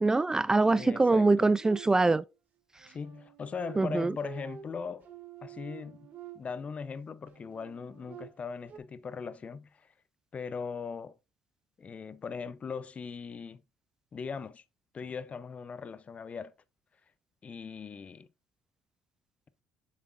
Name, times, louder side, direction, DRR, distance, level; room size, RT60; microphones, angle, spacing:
voice 1, 0.0-2.2 3.8-4.1, right 3 dB, 15° right, 0.3 m, -24 dB
sound 1, 0.7-2.2 2.8-6.8 7.3-8.8, right 10 dB, 50° right, 1.8 m, -49 dB
voice 2, 0.8-1.5 2.9-5.1 5.4-6.1 6.3-9.9 10.3-11.2 11.8-13.6 14.1-14.6 14.9-16.5 17.4-18.3, left 5 dB, 35° left, 0.6 m, -39 dB
7.4 x 7.0 x 2.5 m
supercardioid pair, 85°, 4 cm